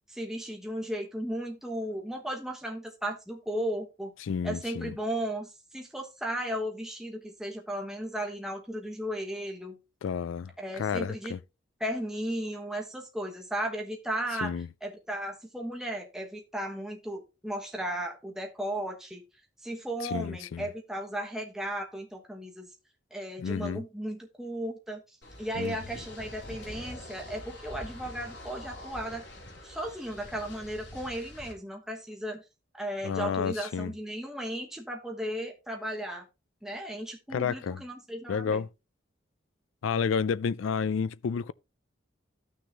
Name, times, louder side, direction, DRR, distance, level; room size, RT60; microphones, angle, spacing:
voice 1, 0.1-4.1 4.4-9.8 10.6-11.3 11.8-14.5 14.8-19.2 19.6-22.7 23.1-25.0 25.4-29.2 29.6-32.4 32.7-36.2 36.6-38.6, right 1 dB, 5° right, 1.2 m, -35 dB
voice 2, 4.2-4.9 10.0-10.5 10.8-11.4 14.4-14.7 20.0-20.7 23.4-23.8 25.6-25.7 33.0-33.9 37.3-37.8 38.3-38.7 39.8-41.5, left 6 dB, 90° left, 0.4 m, -30 dB
sound 1, 25.2-31.5, left 1 dB, 60° left, 3.6 m, -45 dB
13.5 x 6.3 x 2.9 m
head